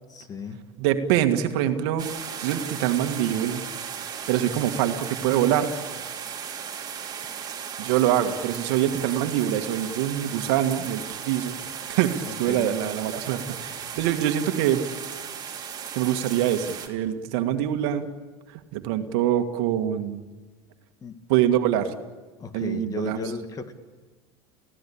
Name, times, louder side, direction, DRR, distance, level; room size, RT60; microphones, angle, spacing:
voice 1, 0.1-0.6 12.5-12.7 21.0-21.2 22.4-23.7, left 4 dB, 25° left, 8 dB, 2.2 m, -34 dB
voice 2, 0.8-2.1 2.4-3.6 4.3-5.7 7.8-14.8 15.9-18.1 18.5-20.2 21.3-21.9 22.5-23.2, right 11 dB, 70° right, 7 dB, 1.9 m, -24 dB
sound 1, 2.0-16.9, right 8 dB, 30° right, 3.2 m, -36 dB
29.5 x 16.5 x 8.7 m, 1.3 s
supercardioid pair, 115°, 14 cm